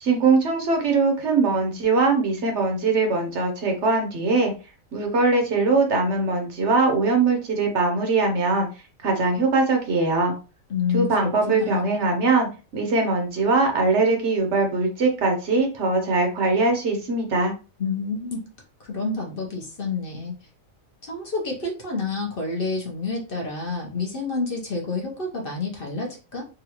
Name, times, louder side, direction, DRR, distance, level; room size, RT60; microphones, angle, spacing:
voice 1, 0.0-4.5 4.9-8.7 9.0-10.3 10.9-17.5, right 3 dB, 60° right, 3 dB, 1.0 m, -21 dB
voice 2, 10.7-11.8 17.8-18.4 18.9-20.3 21.0-26.4, left 4 dB, 50° left, -1 dB, 0.9 m, -29 dB
3.9 x 2.3 x 2.8 m, 0.32 s
omnidirectional pair, 1.4 m